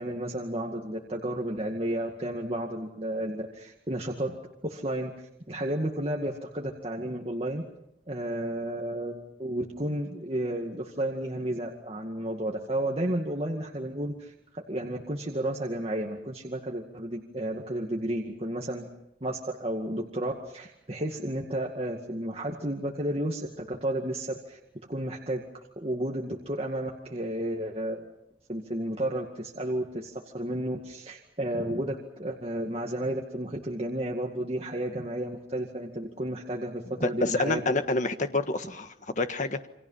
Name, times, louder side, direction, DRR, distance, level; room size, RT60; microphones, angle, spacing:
voice 1, 0.0-4.4 4.6-5.1 5.5-7.6 8.1-18.9 19.2-24.6 24.9-25.4 25.8-28.0 28.5-37.6, right 1 dB, 35° right, 0 dB, 2.1 m, -32 dB
voice 2, 37.0-39.7, left 2 dB, 45° left, 8 dB, 1.6 m, -28 dB
29.0 x 25.5 x 5.8 m, 0.83 s
head